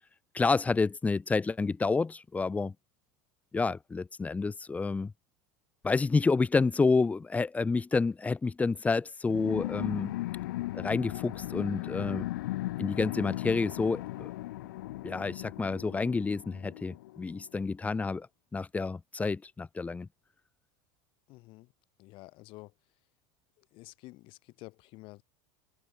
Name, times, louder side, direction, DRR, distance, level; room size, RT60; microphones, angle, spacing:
voice 1, 0.3-2.7 3.5-5.1 5.8-10.1 10.7-12.3 12.8-14.3 15.0-18.3 18.5-20.1, left 4 dB, 15° left, 1.1 m, -29 dB
sound 1, 9.3-17.4, left 17 dB, 85° left, 1.6 m, -37 dB
voice 2, 21.3-21.7 22.0-23.0 23.6-25.2, left 21 dB, 55° left, 3.9 m, -50 dB
supercardioid pair, 125°, 11 cm